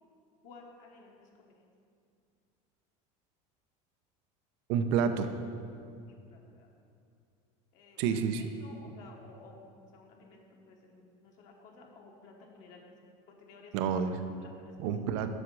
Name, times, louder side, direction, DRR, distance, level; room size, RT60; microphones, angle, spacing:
voice 1, 0.4-1.1 1.4-1.5 6.1-6.7 7.7-8.2 8.6-9.7 9.9-12.8 13.3-13.7 14.4-14.7, left 3 dB, 50° left, 0 dB, 1.2 m, -55 dB
voice 2, 4.7-5.3 8.0-8.5 13.7-14.2 14.8-15.3, right 7 dB, 70° right, 8 dB, 0.7 m, -29 dB
7.8 x 6.1 x 6.1 m, 2.4 s
cardioid pair, 150°, 16 cm